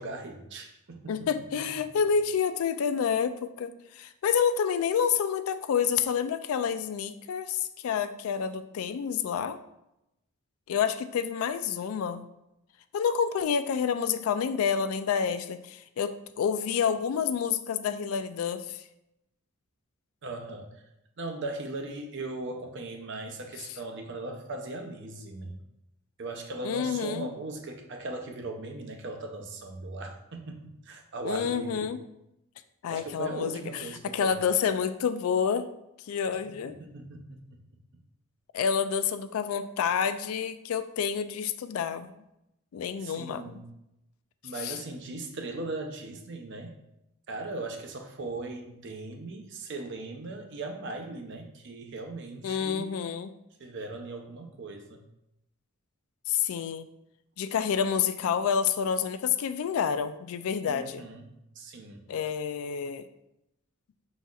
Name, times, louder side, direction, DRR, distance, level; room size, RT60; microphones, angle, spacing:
voice 1, 0.0-1.3 20.2-20.8 21.2-25.6 26.2-31.9 32.9-34.4 36.5-37.6 43.0-43.7 44.4-46.8 47.3-53.1 53.6-55.0 60.7-61.3 61.6-62.0, right 2 dB, 55° right, 4 dB, 0.6 m, -39 dB
voice 2, 1.1-9.6 10.7-12.2 12.9-18.8 26.6-27.3 31.2-32.0 32.8-33.8 34.1-35.7 36.1-36.7 38.5-42.1 42.7-43.6 44.6-44.8 52.4-53.3 56.3-56.9 57.4-61.0 62.1-63.1, left 7 dB, 80° left, 11 dB, 0.3 m, -28 dB
5.1 x 4.0 x 2.4 m, 0.85 s
head